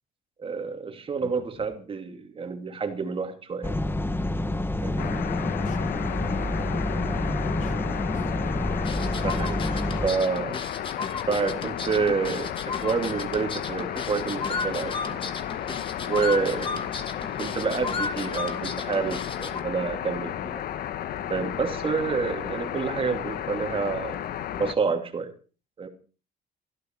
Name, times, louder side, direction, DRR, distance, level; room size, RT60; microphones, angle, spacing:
voice 1, 0.4-3.7 4.8-5.2 9.2-9.6 10.0-10.6 11.3-15.2 16.0-16.8 17.4-20.6 21.3-24.2 24.6-25.3 25.8-25.9, right 5 dB, 35° right, 6 dB, 2.7 m, -28 dB
voice 2, 1.2-1.6 5.6-7.0 7.6-8.3, left 5 dB, 45° left, 6 dB, 3.0 m, -44 dB
sound 1, 3.6-10.1, left 1 dB, 15° left, 1.0 m, -28 dB
sound 2, 5.0-24.7, left 10 dB, 60° left, 1.2 m, -33 dB
sound 3, 8.8-19.6, left 4 dB, 30° left, 2.3 m, -34 dB
19.0 x 13.5 x 4.6 m, 0.37 s
cardioid pair, 110°, 17 cm